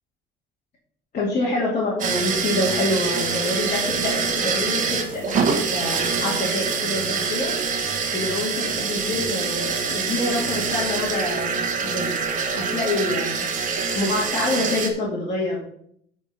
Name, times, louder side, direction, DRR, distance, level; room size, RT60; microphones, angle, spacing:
voice 1, 1.1-7.5 8.1-12.2 12.5-13.5 13.9-15.6, left 2 dB, 40° left, -6 dB, 2.4 m, -26 dB
sound 1, 2.0-14.9, right 5 dB, 40° right, 1.3 m, -25 dB
9.0 x 4.6 x 5.9 m, 0.66 s
cardioid pair, 165°, 20 cm